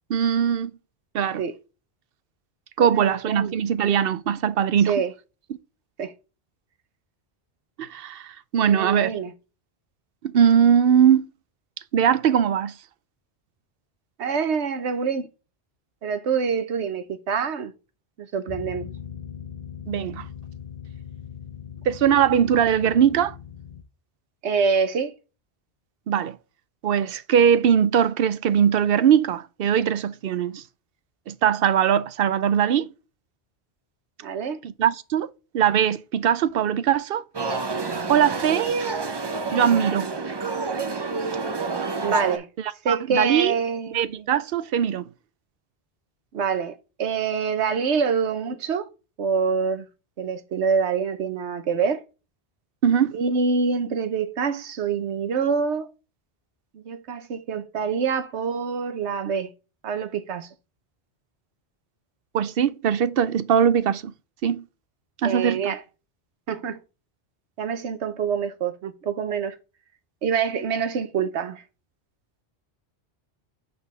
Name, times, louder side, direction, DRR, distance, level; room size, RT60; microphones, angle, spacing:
voice 1, 0.1-0.7 1.1-1.4 2.8-4.9 7.8-9.1 10.3-11.3 11.9-12.7 19.9-20.3 21.9-23.4 26.1-26.4 26.8-30.6 31.3-32.9 34.6-37.2 38.1-38.7 39.5-40.1 42.9-43.6 43.9-45.1 52.8-53.2 62.3-64.1 64.4-64.6 65.2-65.7, right 8 dB, 65° right, 0.7 m, -21 dB
voice 2, 2.8-3.5 4.9-5.1 6.0-6.1 8.6-9.3 14.2-15.3 16.0-17.7 18.2-18.9 24.4-25.1 34.2-34.6 42.0-42.5 42.8-44.3 46.3-48.9 49.2-49.9 50.2-52.0 53.1-55.9 56.7-59.5 59.8-60.5 65.2-65.8 66.5-66.8 67.6-69.5 70.2-71.6, right 6 dB, 90° right, 1.2 m, -26 dB
sound 1, 18.5-23.8, left 8 dB, 45° left, 0.6 m, -39 dB
sound 2, 37.3-42.4, right 4 dB, 30° right, 0.5 m, -28 dB
6.3 x 5.5 x 3.2 m
omnidirectional pair, 1.1 m